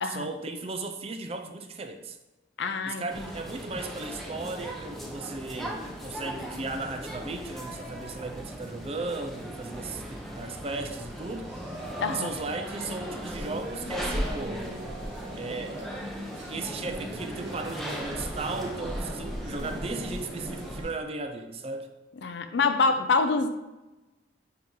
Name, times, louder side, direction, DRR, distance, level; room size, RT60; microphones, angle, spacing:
voice 1, 0.0-2.2 2.9-11.5 12.1-14.7 15.4-15.8 16.4-21.9, right 3 dB, 30° right, 6 dB, 0.5 m, -36 dB
voice 2, 2.6-3.3 12.0-12.3 22.2-23.6, left 4 dB, 70° left, 9 dB, 0.5 m, -26 dB
sound 1, 3.1-20.8, equal, ahead, 0.7 m, -38 dB
sound 2, 11.2-20.9, right 1 dB, 75° right, 1.5 m, -40 dB
9.4 x 3.8 x 3.0 m, 1.1 s
head